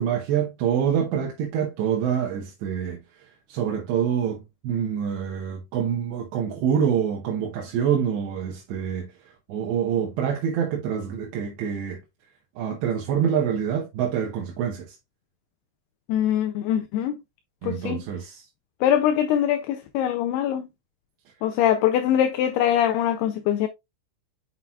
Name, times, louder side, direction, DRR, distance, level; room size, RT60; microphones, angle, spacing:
voice 1, 0.0-3.0 3.5-9.1 9.5-12.0 12.6-15.0 17.6-18.5, right 8 dB, 80° right, 3.2 m, -26 dB
voice 2, 16.1-17.1 17.6-18.0 18.8-20.7 21.4-23.7, left 10 dB, 80° left, 2.4 m, -23 dB
7.8 x 5.7 x 2.3 m
omnidirectional pair, 5.1 m